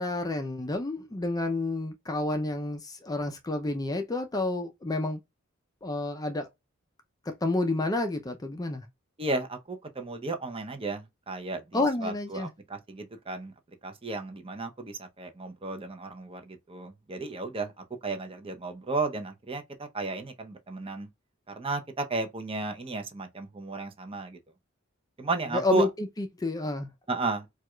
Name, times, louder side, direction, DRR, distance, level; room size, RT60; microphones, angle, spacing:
voice 1, 0.0-5.2 5.8-6.5 7.3-8.8 11.7-12.5 25.5-26.9, left 2 dB, 20° left, 0.4 m, -30 dB
voice 2, 9.2-13.5 13.8-21.1 21.5-24.4 25.2-25.9 27.1-27.5, right 3 dB, 25° right, 0.6 m, -33 dB
4.6 x 2.4 x 2.2 m
head